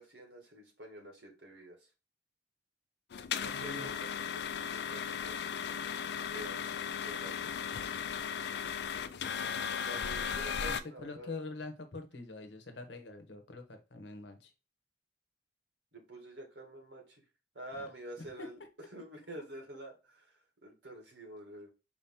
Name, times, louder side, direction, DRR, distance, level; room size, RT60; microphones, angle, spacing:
voice 1, 0.0-1.8 3.4-5.6 6.3-7.5 9.8-11.3 15.9-17.2 17.5-18.6 18.9-21.7, right 1 dB, 85° right, 2 dB, 1.7 m, -48 dB
sound 1, 3.1-10.8, left 7 dB, 65° left, 0.4 m, -36 dB
voice 2, 3.5-3.9 10.7-14.5 17.8-17.9, left 3 dB, 85° left, 7 dB, 0.9 m, -45 dB
4.9 x 2.8 x 3.6 m, 0.29 s
head